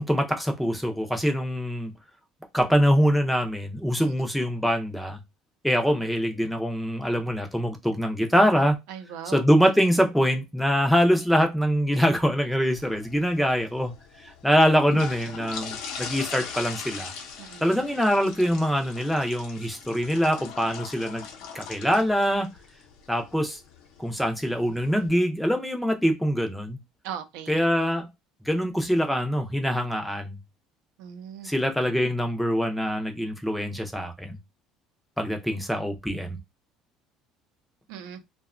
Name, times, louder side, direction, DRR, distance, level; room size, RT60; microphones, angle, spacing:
voice 1, 0.0-1.9 2.5-5.2 5.6-8.8 9.3-13.9 14.2-17.1 17.6-21.2 21.5-22.5 23.1-23.6 24.0-26.8 27.5-28.1 28.4-30.4 31.4-34.4 35.2-36.4, equal, ahead, 0.4 m, -24 dB
voice 2, 8.9-9.4 17.4-17.7 27.0-27.6 31.0-31.5 37.9-38.2, right 8 dB, 85° right, 0.5 m, -38 dB
sound 1, 12.7-25.1, left 6 dB, 70° left, 0.6 m, -41 dB
2.7 x 2.1 x 2.4 m
cardioid pair, 155°, 0 cm